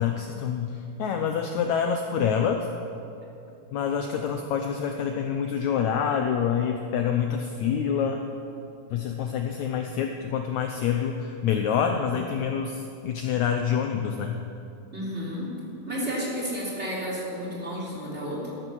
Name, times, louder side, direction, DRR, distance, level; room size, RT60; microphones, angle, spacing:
voice 1, 0.0-2.7 3.7-8.2 8.9-14.4, left 7 dB, 75° left, 4 dB, 1.8 m, -27 dB
voice 2, 14.9-15.5 15.8-18.5, equal, 20° right, -5 dB, 3.4 m, -31 dB
14.0 x 13.0 x 6.3 m, 2.7 s
omnidirectional pair, 3.9 m